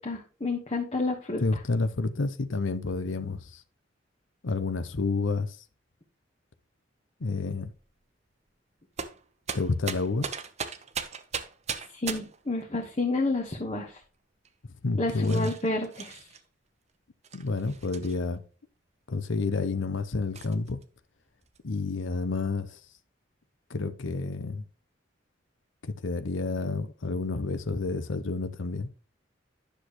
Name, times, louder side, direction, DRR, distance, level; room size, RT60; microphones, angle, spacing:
voice 1, 0.0-1.4 11.9-14.0 15.0-16.3, left 2 dB, 35° left, 1.2 m, -30 dB
voice 2, 1.4-3.6 4.4-5.6 7.2-7.7 9.5-10.3 14.8-15.5 17.3-18.4 19.1-20.8 21.6-22.8 23.7-24.6 25.8-28.9, left 3 dB, 85° left, 0.8 m, -29 dB
sound 1, 7.7-8.0 9.0-12.5 13.3-14.0 14.4-14.5 15.1-16.4 17.2-18.4 19.1-19.2 19.6-19.7 20.3-20.8 21.2-22.1, right 6 dB, 35° right, 0.8 m, -38 dB
10.0 x 6.4 x 3.0 m
head